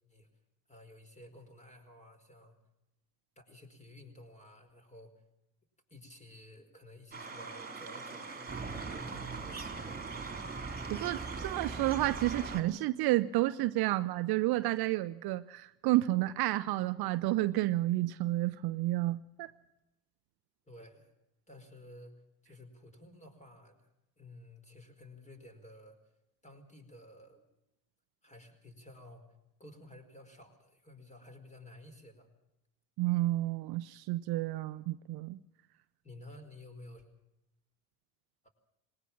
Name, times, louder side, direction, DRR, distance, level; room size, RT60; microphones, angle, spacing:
voice 1, 0.7-2.5 3.4-5.2 5.9-10.0 20.7-21.1 21.5-22.1 22.4-23.9 24.2-26.0 26.4-27.4 28.2-29.2 29.6-32.3 36.0-37.0 38.4-38.5, left 1 dB, 15° left, 7 dB, 4.7 m, -53 dB
sound 1, 7.1-12.6, right 4 dB, 20° right, 3.6 m, -40 dB
voice 2, 10.9-19.5 33.0-35.4, right 17 dB, 55° right, 13 dB, 0.7 m, -30 dB
20.0 x 18.5 x 7.3 m, 0.90 s
supercardioid pair, 90°, 46 cm